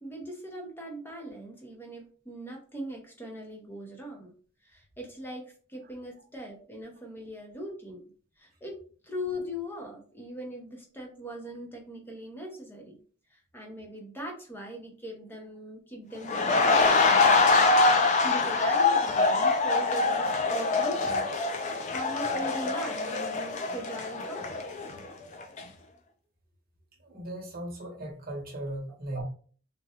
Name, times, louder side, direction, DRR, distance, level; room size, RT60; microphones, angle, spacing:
voice 1, 0.0-4.3 4.6-8.1 8.4-13.0 13.3-17.2 18.2-24.9, equal, 10° left, 0 dB, 0.7 m, -41 dB
sound 1, 16.2-25.1 25.4-25.6, left 3 dB, 35° left, 0.3 m, -24 dB
voice 2, 26.9-29.2, right 1 dB, 45° right, -1 dB, 1.0 m, -38 dB
3.6 x 2.2 x 2.8 m, 0.42 s
head